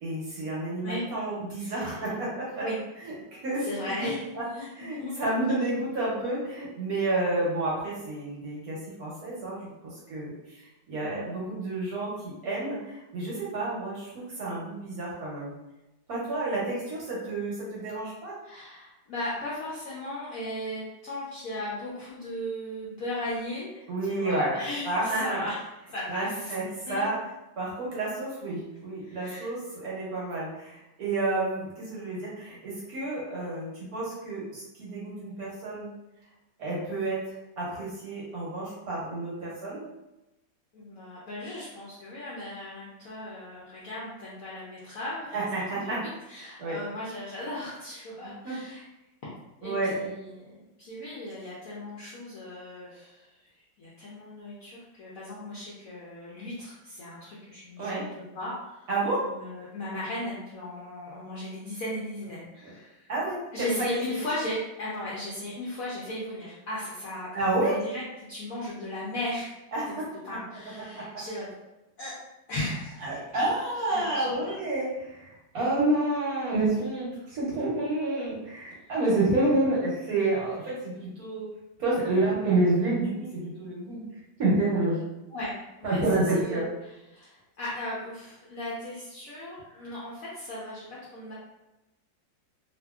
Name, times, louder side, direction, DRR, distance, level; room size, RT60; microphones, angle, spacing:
voice 1, 0.0-2.7 3.0-3.1 3.4-3.6 4.4-4.5 4.8-15.5 16.1-18.4 23.9-25.4 26.1-27.1 27.6-35.9 36.6-37.2 37.6-39.8 45.3-46.0 46.6-46.8 48.4-48.5 49.6-50.0 57.8-58.0 58.9-59.3 62.6-62.7 63.1-64.0 67.3-67.8 69.7-70.1 70.8-71.0 73.0-81.5 81.8-84.0 84.4-85.0 85.8-86.7, right 2 dB, 60° right, -6 dB, 1.0 m, -29 dB
voice 2, 1.6-2.1 2.6-2.8 3.6-5.2 11.0-11.3 18.4-26.5 26.9-27.1 29.0-29.5 40.7-45.5 45.8-48.8 49.6-53.3 53.8-58.9 59.3-63.1 63.5-67.3 67.6-68.0 68.3-69.5 70.3-71.5 72.0-72.1 72.5-73.2 73.9-74.3 85.3-86.0 86.3-91.3, left 1 dB, 70° left, -7 dB, 0.8 m, -37 dB
2.8 x 2.6 x 2.2 m, 0.98 s
omnidirectional pair, 2.0 m